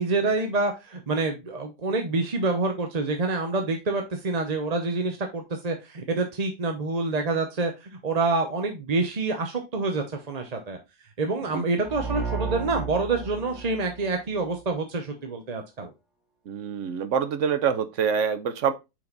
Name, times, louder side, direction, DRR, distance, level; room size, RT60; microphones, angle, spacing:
voice 1, 0.0-10.8 11.2-15.9, right 3 dB, 35° right, 0.7 m, -27 dB
sound 1, 11.8-14.6, right 5 dB, ahead, 1.0 m, -33 dB
voice 2, 16.5-18.7, right 7 dB, 55° right, 1.0 m, -25 dB
6.1 x 4.9 x 3.9 m
omnidirectional pair, 1.7 m